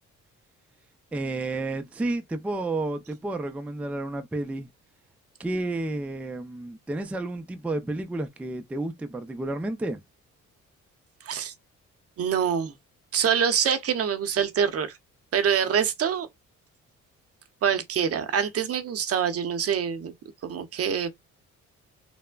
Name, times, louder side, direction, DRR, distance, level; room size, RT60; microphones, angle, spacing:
voice 1, 1.1-4.7 5.4-10.0, right 2 dB, 5° right, 0.3 m, -31 dB
voice 2, 11.2-11.5 12.2-12.7 13.1-15.0 15.3-16.3 17.6-20.1 20.4-21.1, right 7 dB, 50° right, 0.6 m, -25 dB
3.2 x 2.0 x 2.2 m
cardioid pair, 90°, 30 cm